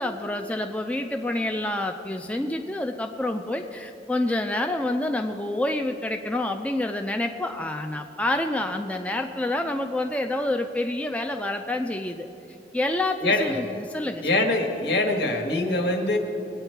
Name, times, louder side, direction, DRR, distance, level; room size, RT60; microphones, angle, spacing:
voice 1, 0.0-12.3 12.7-14.3, left 1 dB, 5° left, 4 dB, 0.4 m, -28 dB
voice 2, 13.2-13.6 14.2-16.2, left 2 dB, 80° left, 2 dB, 1.6 m, -23 dB
20.5 x 8.8 x 4.6 m, 2.8 s
head